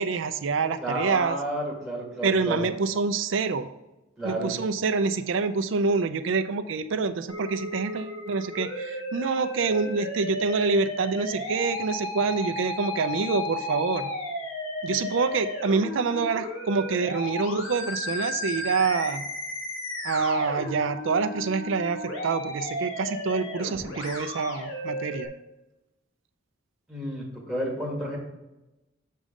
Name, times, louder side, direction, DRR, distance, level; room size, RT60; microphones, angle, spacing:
voice 1, 0.0-1.4 2.2-3.7 4.2-14.1 14.8-19.2 20.0-25.3, right 4 dB, 70° right, 9 dB, 0.5 m, -26 dB
voice 2, 0.8-2.7 4.2-4.5 26.9-28.2, right 1 dB, ahead, -4 dB, 1.9 m, -31 dB
Musical instrument, 7.3-25.3, left 2 dB, 90° left, 1.7 m, -34 dB
6.8 x 6.2 x 3.7 m, 0.99 s
head